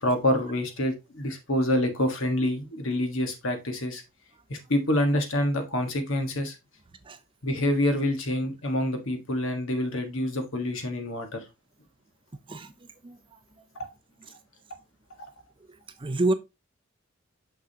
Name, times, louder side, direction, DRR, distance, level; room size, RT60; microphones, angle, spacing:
voice 1, 0.0-4.0 4.5-6.6 7.4-11.4, left 1 dB, 65° left, 1.4 m, -27 dB
voice 2, 16.0-16.3, right 2 dB, 25° right, 0.5 m, -26 dB
6.4 x 5.8 x 2.8 m
head